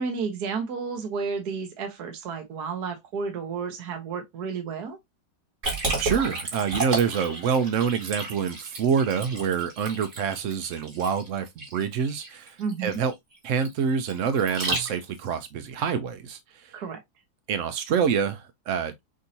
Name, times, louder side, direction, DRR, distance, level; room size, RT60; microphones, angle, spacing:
voice 1, 0.0-5.0 12.6-13.0 16.7-17.0, right 5 dB, 60° right, 1.5 m, -31 dB
Liquid, 5.6-15.3, right 3 dB, 40° right, 2.1 m, -32 dB
voice 2, 6.0-13.1 13.4-16.8 17.5-18.9, right 7 dB, 85° right, 0.6 m, -26 dB
6.2 x 2.7 x 2.7 m
omnidirectional pair, 2.0 m